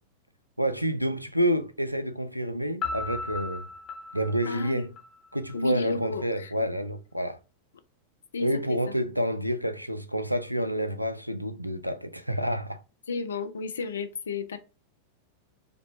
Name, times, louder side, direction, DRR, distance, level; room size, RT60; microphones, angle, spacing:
voice 1, 0.6-3.7 4.1-4.9 5.3-7.4 8.4-12.8, equal, 90° right, 0.3 m, -28 dB
Piano, 2.8-5.6, left 4 dB, 30° left, 1.0 m, -36 dB
voice 2, 4.5-4.9 5.5-6.5 8.3-8.9 13.1-14.6, left 4 dB, 70° left, 0.4 m, -32 dB
5.1 x 2.1 x 2.7 m
figure-of-eight pair, 90°, 0 cm